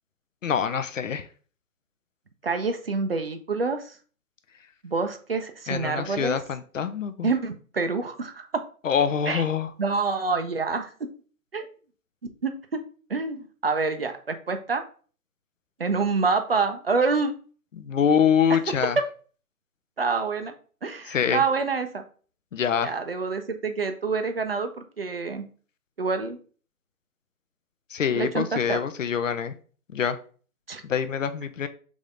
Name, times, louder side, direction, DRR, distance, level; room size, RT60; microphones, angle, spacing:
voice 1, 0.4-1.3 5.7-7.3 8.8-9.7 17.7-19.0 21.1-21.4 22.5-22.9 27.9-29.5 29.9-30.2 30.8-31.7, left 7 dB, 60° left, 11 dB, 0.6 m, -25 dB
voice 2, 2.4-4.0 4.8-6.4 7.2-8.4 9.3-9.4 9.8-10.9 11.5-11.7 12.4-12.8 13.1-14.8 15.8-17.3 20.0-20.5 20.8-22.0 22.8-25.4 26.0-26.4 28.1-28.8 30.7-30.8, right 4 dB, 45° right, 7 dB, 0.5 m, -27 dB
3.6 x 3.4 x 3.8 m, 0.41 s
figure-of-eight pair, 155°, 44 cm